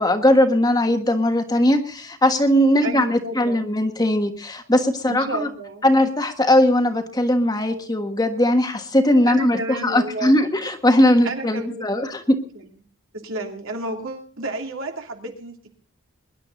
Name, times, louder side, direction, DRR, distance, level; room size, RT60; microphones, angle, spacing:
voice 1, 0.0-5.5 5.8-12.4, left 1 dB, 20° left, 6 dB, 1.4 m, -19 dB
voice 2, 2.8-3.7 5.0-5.9 9.3-10.4 11.2-12.1 12.5-12.6 13.1-15.7, right 2 dB, 75° right, 2 dB, 2.9 m, -31 dB
22.5 x 11.0 x 4.0 m, 0.42 s
head